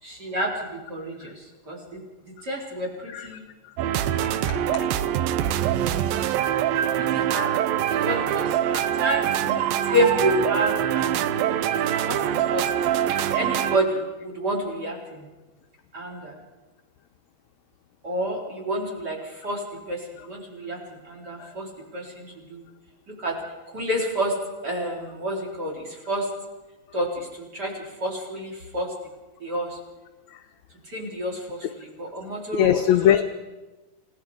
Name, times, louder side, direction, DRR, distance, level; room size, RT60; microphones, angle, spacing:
voice 1, 0.0-3.4 6.3-6.4 6.9-7.6 8.0-8.6 9.0-12.7 13.0-15.2 15.9-16.4 18.0-22.6 23.1-23.4 23.7-24.3 24.6-26.3 26.9-28.9 29.4-29.8 30.9-32.8, equal, 30° right, 0 dB, 4.4 m, -29 dB
sound 1, 3.8-13.8, right 11 dB, 90° right, 2.6 m, -24 dB
voice 2, 4.5-4.9 8.7-8.9 32.6-33.2, left 10 dB, 75° left, 7 dB, 1.6 m, -21 dB
29.5 x 17.5 x 5.1 m, 1.2 s
omnidirectional pair, 4.0 m